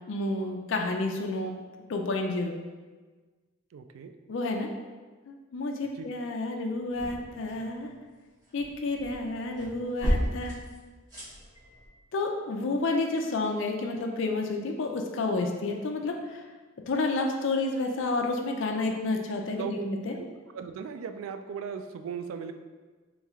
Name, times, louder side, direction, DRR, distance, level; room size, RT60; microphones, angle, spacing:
voice 1, 0.1-1.5 1.9-2.6 4.3-4.7 5.3-7.9 8.5-10.6 12.1-16.4 16.9-20.2, left 2 dB, 65° left, 2 dB, 0.4 m, -30 dB
voice 2, 3.7-4.1 6.0-6.1 19.6-19.9 20.2-20.3 20.5-22.5, right 6 dB, 85° right, 8 dB, 0.3 m, -37 dB
sound 1, 6.7-7.9 8.2-11.9, equal, 20° right, 1.2 m, -34 dB
3.2 x 3.1 x 3.5 m, 1.4 s
head